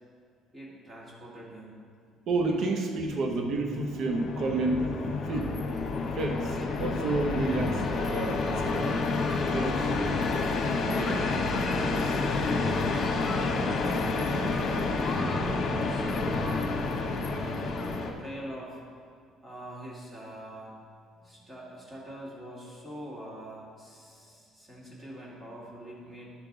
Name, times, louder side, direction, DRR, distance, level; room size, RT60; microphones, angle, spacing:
voice 1, 0.5-1.8 14.3-18.8 19.4-20.7 21.2-26.3, equal, 15° right, -5 dB, 2.0 m, -43 dB
voice 2, 2.3-4.8 5.3-5.6 6.2-9.0 9.5-9.9 10.9-11.4 11.9-12.2, right 3 dB, 55° right, 2 dB, 0.9 m, -30 dB
sound 1, 3.7-18.1, left 3 dB, 50° left, 1.1 m, -29 dB
Human group actions, 5.3-18.0, left 2 dB, 25° left, 0.9 m, -45 dB
12.5 x 4.6 x 3.9 m, 2.1 s
cardioid pair, 130°, 0 cm